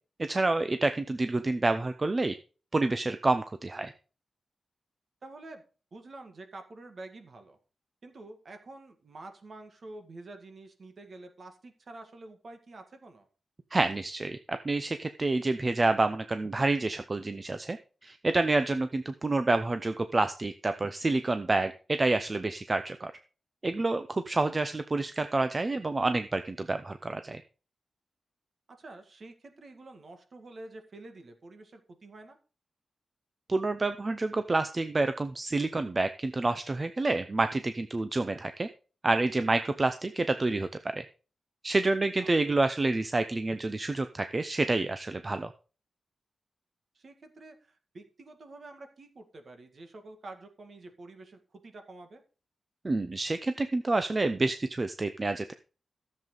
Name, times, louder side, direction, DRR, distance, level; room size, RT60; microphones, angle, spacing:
voice 1, 0.2-2.3 2.7-3.9 13.7-17.8 18.0-23.1 23.6-27.4 33.5-38.7 39.0-41.0 41.6-45.5 52.8-55.5, right 2 dB, 25° right, 10 dB, 0.6 m, -28 dB
voice 2, 5.2-5.6 5.9-7.6 8.0-13.3 21.6-21.7 28.8-32.4 42.2-42.3 47.0-52.2, right 2 dB, 50° right, 6 dB, 1.9 m, -48 dB
14.0 x 7.5 x 3.9 m, 0.36 s
wide cardioid pair, 140°, 0 cm